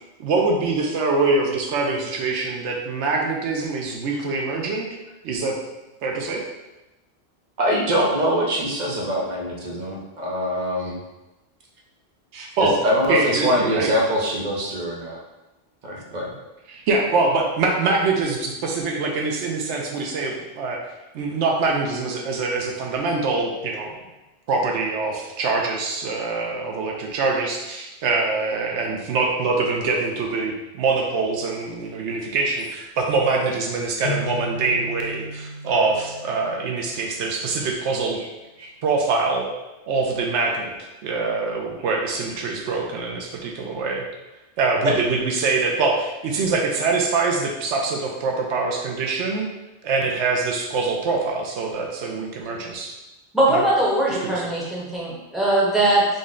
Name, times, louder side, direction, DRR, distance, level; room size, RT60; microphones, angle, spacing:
voice 1, 0.2-4.9 5.2-5.6 6.0-6.4 12.3-12.8 13.1-13.9 16.7-20.8 21.1-23.9 24.5-38.2 38.8-39.5 39.9-44.0 44.6-49.5 49.8-52.9 53.5-53.6 54.2-54.4, right 3 dB, 80° right, 1 dB, 0.9 m, -24 dB
voice 2, 7.6-11.0 12.6-15.2 15.8-16.3 37.6-37.7 38.6-38.7 44.8-44.9, equal, 45° right, -2 dB, 0.7 m, -23 dB
sound 1, 34.0-37.6, equal, 55° left, 0.7 m, -35 dB
voice 3, 53.3-56.1, right 1 dB, ahead, -7 dB, 0.9 m, -20 dB
3.9 x 2.1 x 3.6 m, 1.0 s
omnidirectional pair, 1.2 m